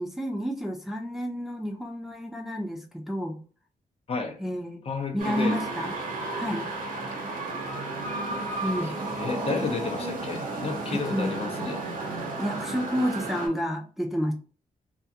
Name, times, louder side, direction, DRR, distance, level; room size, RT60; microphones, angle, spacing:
voice 1, 0.0-3.4 4.4-4.8 5.1-6.0 6.4-6.7 8.6-8.9 10.9-11.3 12.4-14.3, equal, ahead, 0.4 m, -30 dB
voice 2, 4.1-4.4 4.9-5.6 8.8-11.8, left 4 dB, 45° left, 0.6 m, -32 dB
sound 1, 5.2-13.5, right 2 dB, 80° right, 0.8 m, -33 dB
2.3 x 2.3 x 2.7 m
cardioid pair, 85°, 14 cm